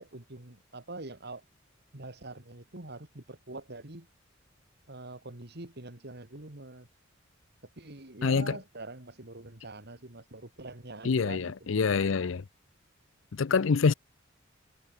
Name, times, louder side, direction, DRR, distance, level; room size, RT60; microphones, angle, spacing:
voice 1, 0.0-1.5 1.9-4.1 4.9-6.9 7.8-11.9, right 2 dB, 55° right, 2.8 m, -44 dB
voice 2, 8.2-8.6 11.0-12.4 13.3-13.9, left 5 dB, 70° left, 0.5 m, -26 dB
head